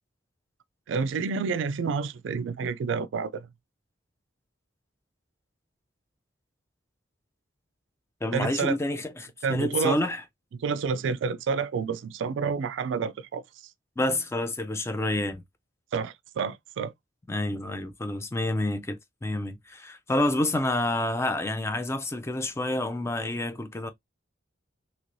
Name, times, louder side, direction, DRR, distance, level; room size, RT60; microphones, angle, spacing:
voice 1, 0.9-3.5 8.3-8.8 9.4-10.0 10.6-13.4 15.9-16.9, right 5 dB, 75° right, 0.3 m, -29 dB
voice 2, 8.2-10.2 14.0-15.4 17.3-23.9, left 1 dB, 15° left, 0.4 m, -28 dB
3.1 x 2.9 x 2.5 m
head